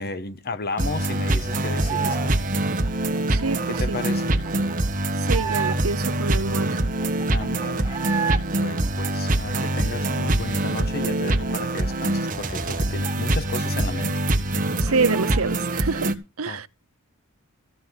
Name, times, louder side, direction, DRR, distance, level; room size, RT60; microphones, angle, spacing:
voice 1, 0.0-2.3 3.7-4.3 7.3-7.9 8.6-14.2 16.5-16.7, left 3 dB, 45° left, 1.2 m, -33 dB
sound 1, 0.7-2.3 2.6-6.1 6.5-6.6 6.8-8.4 8.8-10.5 10.8-10.9 11.2-13.7 13.9-14.0 14.4-15.5, right 7 dB, 15° right, 2.6 m, -34 dB
sound 2, 0.8-16.1, right 1 dB, 40° right, 1.5 m, -24 dB
voice 2, 3.3-4.0 5.2-6.8 14.8-16.7, right 4 dB, 70° right, 0.8 m, -27 dB
15.0 x 5.7 x 8.2 m
head